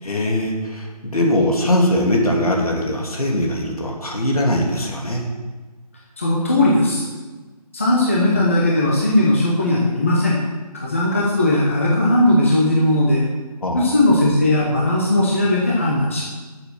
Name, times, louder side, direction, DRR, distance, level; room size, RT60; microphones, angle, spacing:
voice 1, 0.0-5.2 13.6-13.9, left 1 dB, 65° left, 0 dB, 2.8 m, -21 dB
voice 2, 6.2-7.0 7.7-10.4 10.8-13.2 13.7-16.3, left 1 dB, 20° left, -4 dB, 1.0 m, -18 dB
12.0 x 7.2 x 6.0 m, 1.3 s
figure-of-eight pair, 180°, 20 cm